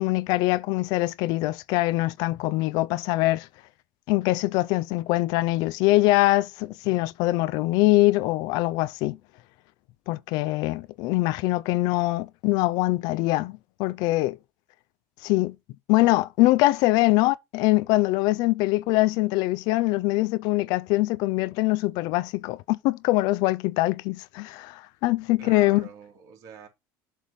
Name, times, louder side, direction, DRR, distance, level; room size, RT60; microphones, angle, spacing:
voice 1, 0.0-3.5 4.1-9.2 10.1-14.4 15.2-15.5 15.9-25.8, left 19 dB, 65° left, 0.4 m, -23 dB
voice 2, 25.4-26.7, right 7 dB, 50° right, 2.5 m, -45 dB
7.3 x 3.4 x 5.4 m
cardioid pair, 135°, 7 cm